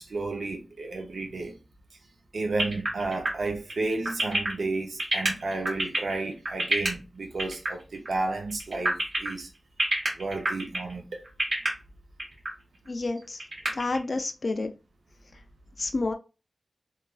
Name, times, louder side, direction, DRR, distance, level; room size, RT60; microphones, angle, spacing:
voice 1, 0.0-1.6 2.3-9.5 10.1-11.2, right 3 dB, 80° right, 0.7 m, -32 dB
sound 1, 2.6-6.9 7.4-7.7 7.9-8.1 8.5-9.3 9.8-10.9 11.3-11.7 12.2-12.5 12.9-13.0 13.2-14.0, right 1 dB, 55° right, 1.4 m, -27 dB
voice 2, 12.9-13.4 13.7-14.7 15.8-16.1, left 3 dB, 50° left, 0.3 m, -29 dB
3.2 x 2.2 x 2.4 m
wide cardioid pair, 95°, 0 cm